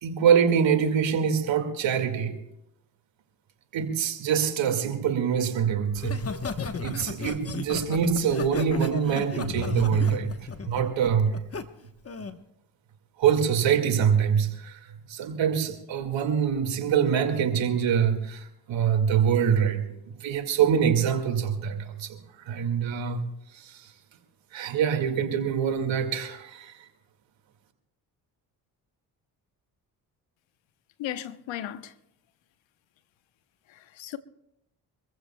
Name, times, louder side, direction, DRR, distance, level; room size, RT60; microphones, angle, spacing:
voice 1, 0.0-2.4 3.7-6.2 6.8-10.3 10.7-11.4 13.2-14.8 15.1-22.2 22.5-23.2 23.5-23.8 24.5-26.7, right 7 dB, 75° right, 2.2 m, -24 dB
Laughter, 5.9-11.6 12.1-12.4, left 5 dB, 30° left, 1.1 m, -34 dB
voice 2, 31.0-31.9 33.7-34.2, left 12 dB, 80° left, 0.9 m, -36 dB
25.0 x 15.0 x 2.3 m
supercardioid pair, 55°, 46 cm